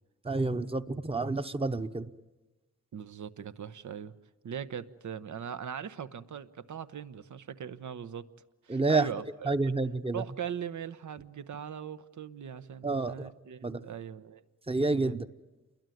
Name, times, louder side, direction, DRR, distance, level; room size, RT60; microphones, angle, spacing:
voice 1, 0.2-2.1 8.7-9.1 9.4-10.2 12.8-13.3 13.6-13.8 14.7-15.3, right 3 dB, 20° right, 10 dB, 0.8 m, -29 dB
voice 2, 2.9-4.1 4.4-8.3 8.6-9.7 10.1-14.4 14.9-15.2, right 8 dB, 90° right, 13 dB, 1.0 m, -40 dB
29.0 x 22.5 x 9.2 m, 1.1 s
wide cardioid pair, 160°, 29 cm